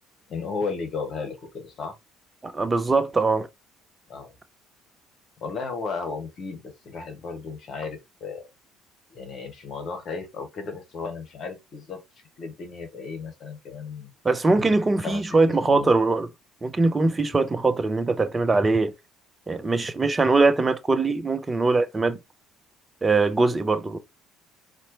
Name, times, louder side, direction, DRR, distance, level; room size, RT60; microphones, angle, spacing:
voice 1, 0.3-1.9 4.1-4.3 5.4-8.5 9.1-12.0 12.4-14.1 15.0-15.4 15.6-15.9, left 4 dB, 50° left, 1.5 m, -34 dB
voice 2, 2.4-3.5 14.2-16.3 16.6-18.9 19.5-22.2 23.0-24.0, right 3 dB, 25° right, 0.6 m, -22 dB
4.2 x 2.6 x 2.8 m
figure-of-eight pair, 55°, 0 cm